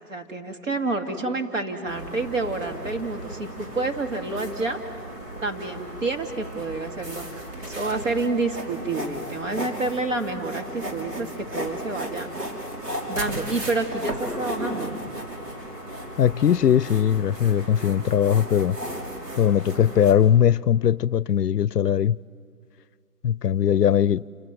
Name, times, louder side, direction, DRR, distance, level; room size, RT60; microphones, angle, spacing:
voice 1, 0.1-4.8 5.4-12.3 13.1-15.0, right 3 dB, 55° right, 2.6 m, -29 dB
sound 1, 1.9-20.1, right 1 dB, 80° right, 6.4 m, -35 dB
voice 2, 16.2-18.8 19.4-22.2 23.2-24.3, left 9 dB, 85° left, 0.6 m, -20 dB
29.0 x 25.5 x 7.8 m
hypercardioid pair, 170°, 47 cm